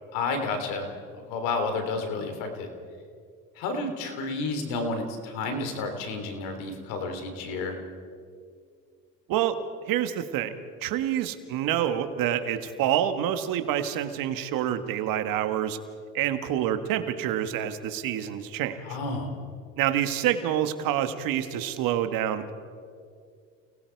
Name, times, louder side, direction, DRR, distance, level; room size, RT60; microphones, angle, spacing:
voice 1, 0.1-0.9 1.3-2.7 3.6-7.8 18.8-19.3, left 3 dB, 85° left, 6 dB, 3.4 m, -31 dB
voice 2, 9.9-10.5 10.8-15.8 16.1-18.8 19.8-22.5, right 11 dB, 75° right, 9 dB, 1.7 m, -27 dB
29.5 x 19.0 x 4.6 m, 2.2 s
supercardioid pair, 85°, 34 cm